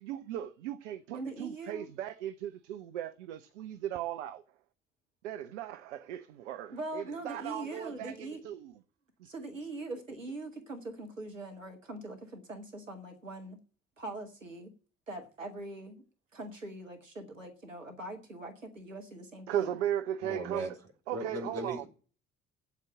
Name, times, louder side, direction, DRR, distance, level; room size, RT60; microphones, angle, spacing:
voice 1, 0.0-4.4 5.2-8.7 9.2-9.3 19.5-20.7 21.1-21.8, right 11 dB, 70° right, 0.7 m, -37 dB
voice 2, 1.1-1.9 6.7-8.4 9.2-13.6 14.0-14.7 15.1-16.0 16.3-19.7, right 2 dB, 90° right, 1.2 m, -42 dB
voice 3, 20.2-20.7 21.1-21.9, right 2 dB, 40° right, 3.7 m, -37 dB
8.2 x 8.1 x 8.5 m
figure-of-eight pair, 50°, 37 cm